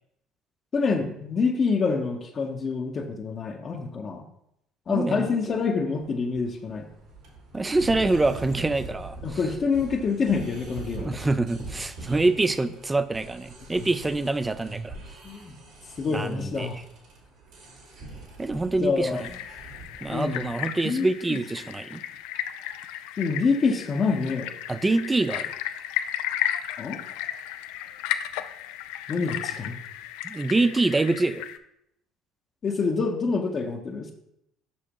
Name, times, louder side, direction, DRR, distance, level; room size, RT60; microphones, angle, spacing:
voice 1, 0.7-4.3 4.9-6.9 9.2-11.3 13.8-13.9 15.2-15.5 16.0-16.8 18.8-19.2 20.1-20.5 20.8-21.4 23.2-24.5 26.8-27.0 29.1-29.8 32.6-34.1, left 4 dB, 40° left, 1 dB, 0.9 m, -26 dB
voice 2, 4.9-5.6 7.5-9.4 11.0-15.0 16.1-16.7 18.4-19.3 20.0-22.0 24.7-25.5 30.2-31.4, right 2 dB, 20° right, 13 dB, 0.5 m, -25 dB
sound 1, 6.0-20.6, right 2 dB, 70° right, 2.2 m, -43 dB
sound 2, 19.1-31.6, left 12 dB, 75° left, 0.3 m, -34 dB
7.0 x 6.0 x 3.0 m, 0.77 s
hypercardioid pair, 65°, 0 cm